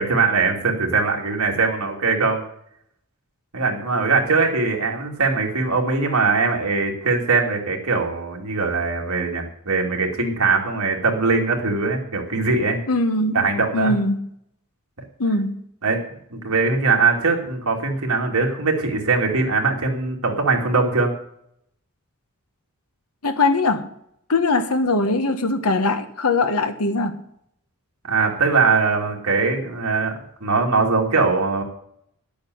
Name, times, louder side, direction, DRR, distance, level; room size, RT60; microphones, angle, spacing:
voice 1, 0.0-2.4 3.5-12.8 13.3-14.0 15.8-16.0 16.3-21.1 28.1-30.1 30.4-31.6, right 4 dB, 80° right, 2.7 m, -21 dB
voice 2, 12.9-13.5 13.7-14.3 15.2-15.6 23.2-23.9 24.3-27.2, left 2 dB, 85° left, 1.3 m, -21 dB
10.5 x 8.5 x 7.9 m
head